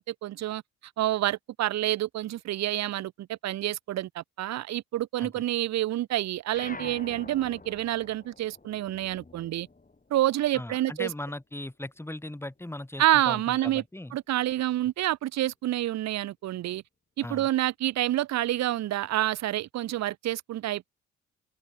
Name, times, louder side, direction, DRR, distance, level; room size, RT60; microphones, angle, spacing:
voice 1, 0.1-0.6 1.0-9.7 10.1-11.1 13.0-13.8 14.1-16.8 17.2-20.9, right 14 dB, 50° right, 0.6 m, -28 dB
sound 1, 6.5-11.3 11.7-13.1, left 3 dB, 25° left, 6.4 m, -48 dB
voice 2, 10.5-14.2 17.2-17.5, left 1 dB, 5° left, 2.1 m, -38 dB
hypercardioid pair, 50°, 35 cm